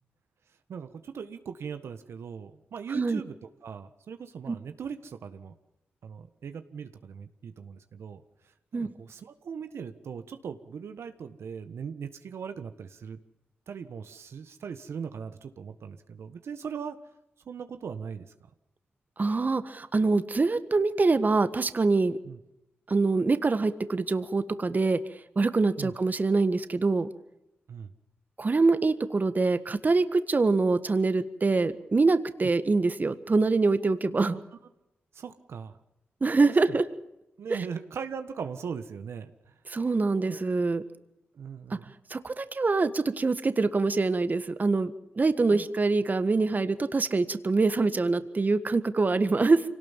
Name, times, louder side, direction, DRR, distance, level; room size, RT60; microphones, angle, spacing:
voice 1, 0.7-3.3 3.6-5.5 6.0-13.2 13.7-17.0 17.4-18.3 22.2-22.4 25.8-25.9 27.7-27.9 35.1-35.8 36.7-36.8 37.4-39.6 40.3-40.5 41.3-41.9 45.5-45.6, right 6 dB, 80° right, 9 dB, 1.5 m, -39 dB
voice 2, 19.2-22.2 22.9-25.0 25.3-27.1 28.4-34.3 36.2-36.8 37.5-37.6 39.7-40.8 41.7-41.8 42.1-49.6, right 3 dB, 40° right, 11 dB, 1.6 m, -25 dB
25.5 x 18.5 x 7.4 m, 0.89 s
cardioid pair, 60°, 4 cm